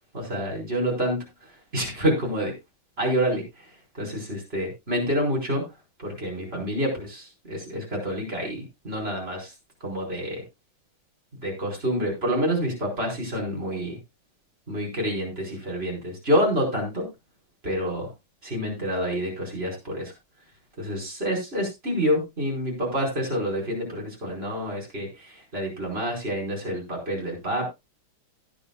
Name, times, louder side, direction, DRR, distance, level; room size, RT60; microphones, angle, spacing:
voice 1, 0.1-1.2 1.7-2.5 3.0-3.4 3.9-5.6 6.0-9.5 9.8-10.4 11.4-14.0 14.7-17.1 17.6-18.1 18.4-20.1 20.8-27.7, equal, 30° right, -1 dB, 5.1 m, -27 dB
18.0 x 9.3 x 2.3 m, 0.22 s
omnidirectional pair, 2.2 m